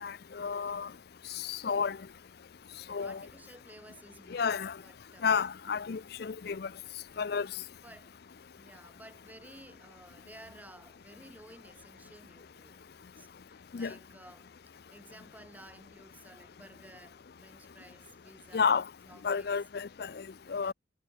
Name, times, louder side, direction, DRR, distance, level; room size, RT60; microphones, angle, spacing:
voice 1, 0.0-0.9 1.4-2.0 2.9-3.2 4.3-4.7 5.2-6.7 7.2-7.5 13.7-13.9 18.5-18.8 19.2-20.2 20.5-20.7, left 6 dB, 55° left, 0.4 m, -31 dB
voice 2, 3.0-4.5 4.8-5.3 7.8-8.2 8.5-12.9 13.2-18.7 19.1-19.6 20.6-20.7, right 1 dB, 10° right, 2.0 m, -54 dB
head